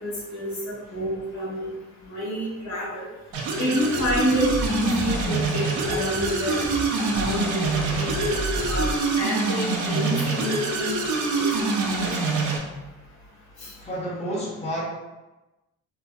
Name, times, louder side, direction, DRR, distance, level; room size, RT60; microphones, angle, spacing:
voice 1, 0.0-1.7 2.1-3.1 3.6-6.6 6.9-8.3 8.7-12.1 13.6-13.7, equal, 70° left, -7 dB, 1.1 m, -28 dB
sound 1, 3.3-12.6, right 3 dB, 75° right, 0.6 m, -25 dB
sound 2, 3.8-9.0, right 2 dB, 30° right, 0.4 m, -33 dB
voice 2, 13.8-14.8, equal, 20° left, -6 dB, 0.9 m, -30 dB
2.8 x 2.4 x 2.2 m, 1.1 s
cardioid pair, 90°, 30 cm